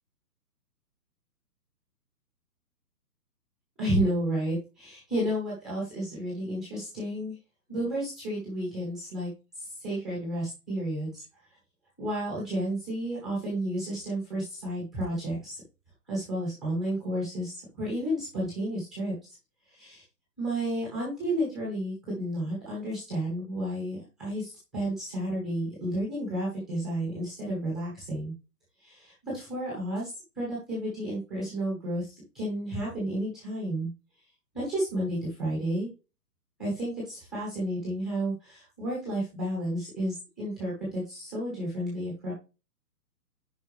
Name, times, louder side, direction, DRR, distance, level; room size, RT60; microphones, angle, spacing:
voice 1, 3.8-7.4 7.7-9.3 9.5-11.5 12.0-15.6 16.1-19.1 19.7-20.0 20.4-28.3 28.8-30.1 30.3-33.9 34.5-35.9 36.6-42.3, right 1 dB, ahead, -5 dB, 1.0 m, -32 dB
10.5 x 4.3 x 3.1 m, 0.29 s
hypercardioid pair, 175°, 50 cm